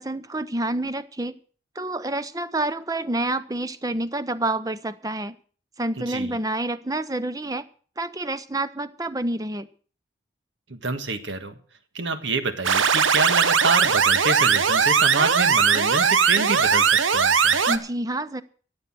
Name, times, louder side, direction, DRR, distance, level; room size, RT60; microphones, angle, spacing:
voice 1, 0.0-1.4 1.8-5.4 5.8-7.7 8.0-9.7 17.7-18.4, right 2 dB, 20° right, 13 dB, 0.6 m, -28 dB
voice 2, 6.0-6.4 10.7-11.6 11.9-17.6, right 3 dB, 70° right, 9 dB, 1.6 m, -27 dB
sound 1, 12.6-17.8, right 6 dB, 90° right, 1.0 m, -19 dB
14.0 x 8.0 x 7.6 m, 0.43 s
head